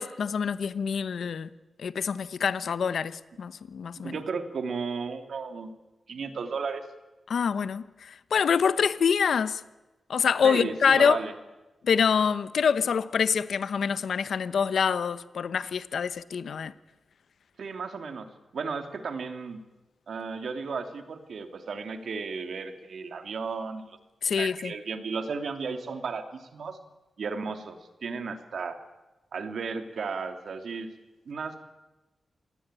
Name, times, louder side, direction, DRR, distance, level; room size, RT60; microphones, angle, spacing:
voice 1, 0.0-1.5 1.8-4.1 7.3-9.6 10.1-11.2 11.8-16.7 24.2-24.7, left 6 dB, 75° left, 1.0 m, -26 dB
voice 2, 4.0-5.7 6.1-6.8 10.4-11.3 17.6-18.3 18.5-19.6 20.1-24.0 24.3-26.8 27.2-28.8 29.3-30.9 31.3-31.6, right 5 dB, 70° right, 2.7 m, -34 dB
26.5 x 20.0 x 9.0 m
wide cardioid pair, 125°, 0 cm